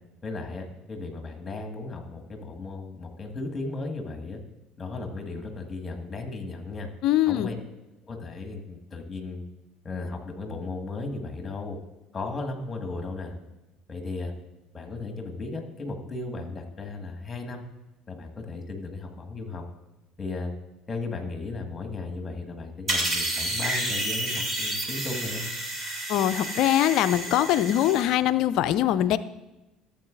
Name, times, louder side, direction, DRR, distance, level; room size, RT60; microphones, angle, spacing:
voice 1, 0.2-4.4 4.8-6.9 7.3-7.6 8.0-9.4 9.8-11.8 12.1-13.3 13.9-14.3 14.7-17.6 18.1-19.6 20.2-20.5 20.9-25.5, left 3 dB, 25° left, 3 dB, 1.7 m, -35 dB
voice 2, 7.0-7.5 26.1-29.2, left 12 dB, 60° left, 14 dB, 0.4 m, -22 dB
sound 1, 22.9-28.0, right 1 dB, 30° right, 2.6 m, -30 dB
14.0 x 7.8 x 2.5 m, 1.0 s
hypercardioid pair, 65°, 0 cm